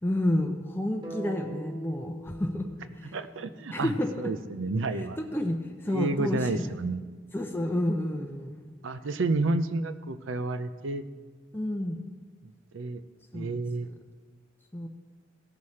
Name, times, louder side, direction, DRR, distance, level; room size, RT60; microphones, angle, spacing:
voice 1, 0.0-2.7 2.9-3.2 3.7-4.3 4.9-6.9 7.3-8.7 11.5-12.0 13.3-13.9 14.7-14.9, left 1 dB, 10° left, 3 dB, 0.6 m, -30 dB
sound 1, 1.0-5.1, right 2 dB, 25° right, 1.4 m, -43 dB
voice 2, 3.1-3.9 4.2-5.2 5.9-7.0 8.8-11.0 12.4-13.0 13.3-13.9, right 2 dB, 75° right, 12 dB, 0.6 m, -30 dB
17.0 x 6.5 x 4.2 m, 1.5 s
head